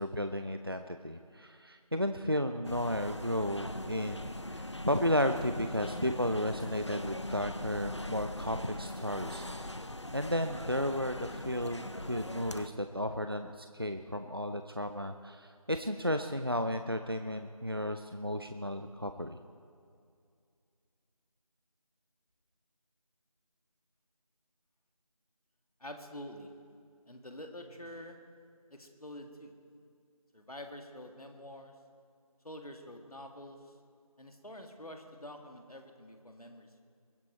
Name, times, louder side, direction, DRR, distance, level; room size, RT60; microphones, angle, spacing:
voice 1, 0.0-9.8 10.1-11.8 12.1-19.4, equal, 40° right, 7 dB, 0.5 m, -33 dB
sound 1, 2.6-12.7, left 1 dB, 50° left, 0.6 m, -41 dB
voice 2, 25.8-26.5 27.1-28.2 28.7-29.5 30.3-31.7 32.4-33.7 34.2-36.8, left 1 dB, 75° left, 4 dB, 2.0 m, -47 dB
22.0 x 10.0 x 4.3 m, 2.3 s
figure-of-eight pair, 175°, 19 cm